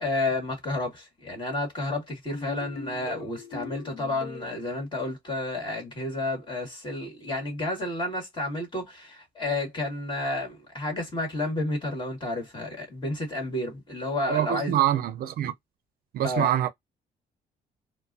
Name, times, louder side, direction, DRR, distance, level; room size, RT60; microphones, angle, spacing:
voice 1, 0.0-14.8 16.2-16.5, left 2 dB, 30° left, 1.9 m, -31 dB
sound 1, 2.3-4.7, left 4 dB, 65° left, 0.7 m, -41 dB
voice 2, 14.2-15.5 16.1-16.7, right 12 dB, 60° right, 0.5 m, -25 dB
4.4 x 2.2 x 2.6 m
cardioid pair, 145°, 17 cm